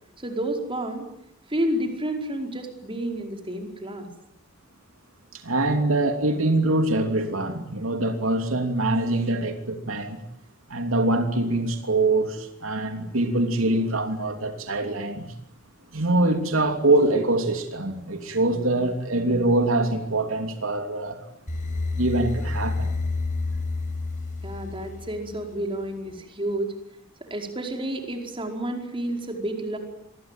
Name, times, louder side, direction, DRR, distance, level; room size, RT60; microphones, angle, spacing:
voice 1, 0.2-1.1 1.5-4.1 24.4-26.7 27.2-29.8, right 1 dB, 25° right, 5.0 m, -30 dB
voice 2, 5.3-10.2 10.7-15.3 15.9-21.2 22.0-22.9, right 2 dB, 80° right, 3.0 m, -24 dB
sound 1, 21.5-25.6, left 3 dB, 40° left, 6.2 m, -29 dB
27.0 x 22.0 x 9.2 m
head